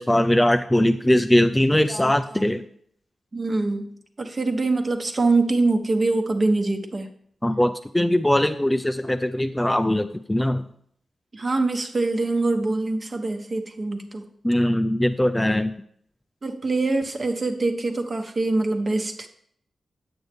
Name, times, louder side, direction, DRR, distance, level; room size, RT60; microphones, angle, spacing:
voice 1, 0.0-2.6 7.4-10.6 14.4-15.7, left 1 dB, 10° left, 8 dB, 0.3 m, -21 dB
voice 2, 1.7-2.6 3.3-7.1 11.3-14.3 16.4-19.3, right 3 dB, 35° right, 5 dB, 1.0 m, -24 dB
8.6 x 7.9 x 3.5 m, 0.64 s
wide cardioid pair, 110°, 0 cm